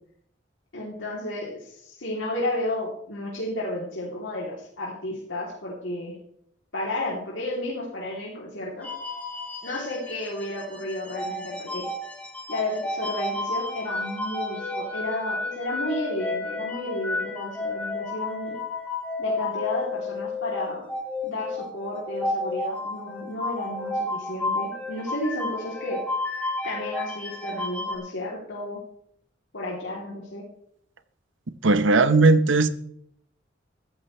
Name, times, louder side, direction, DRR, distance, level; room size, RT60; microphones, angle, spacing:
voice 1, 0.7-6.1 6.7-8.9 9.6-11.8 12.5-18.6 19.2-20.9 21.2-26.0 26.3-28.8 29.5-30.4, left 1 dB, 80° left, -5 dB, 3.2 m, -32 dB
sound 1, 8.8-27.9, left 2 dB, 10° left, 3.2 m, -32 dB
voice 2, 31.6-32.7, right 3 dB, 85° right, 12 dB, 0.9 m, -17 dB
15.5 x 14.0 x 3.3 m, 0.69 s
head